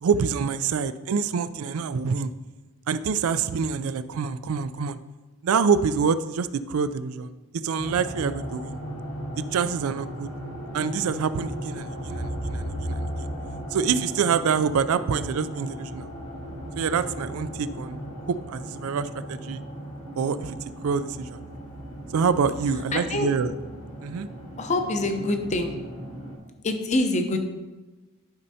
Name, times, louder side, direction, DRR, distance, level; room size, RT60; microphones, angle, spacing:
voice 1, 0.0-2.3 2.9-5.0 5.4-7.3 7.6-8.8 9.4-10.3 10.7-13.0 13.7-16.1 16.8-18.0 18.3-19.6 20.2-20.6 20.8-21.4 22.1-23.5 24.0-24.3, right 6 dB, 80° right, 14 dB, 0.4 m, -26 dB
sound 1, 7.8-26.4, equal, 65° left, 1.6 m, -36 dB
voice 2, 22.9-23.3 24.6-25.8 26.6-27.4, left 2 dB, 30° left, 6 dB, 0.6 m, -25 dB
11.5 x 5.5 x 2.7 m, 1.2 s
head